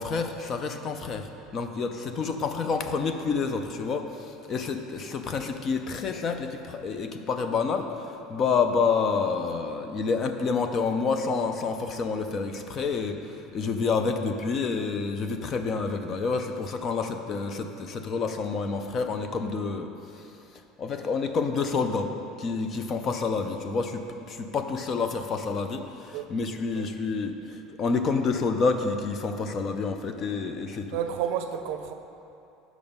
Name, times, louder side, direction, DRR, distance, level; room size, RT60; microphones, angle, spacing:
voice 1, 0.0-20.3 20.8-31.0, left 4 dB, 30° left, 7 dB, 0.5 m, -28 dB
voice 2, 30.9-31.9, right 9 dB, 65° right, 7 dB, 0.6 m, -31 dB
8.7 x 6.1 x 5.3 m, 2.8 s
cardioid pair, 160°, 0 cm